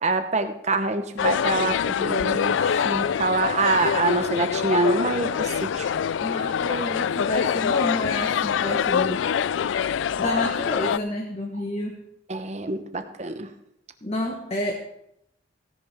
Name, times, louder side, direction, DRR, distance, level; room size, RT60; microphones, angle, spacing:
voice 1, 0.0-5.9 6.7-6.8 12.3-13.5, right 3 dB, 35° right, 8 dB, 0.9 m, -25 dB
sound 1, 1.2-11.0, left 8 dB, 80° left, 0.3 m, -25 dB
voice 2, 6.2-9.3 10.2-12.0 14.0-14.8, left 1 dB, 35° left, 0 dB, 1.3 m, -29 dB
16.5 x 10.5 x 3.6 m, 0.79 s
head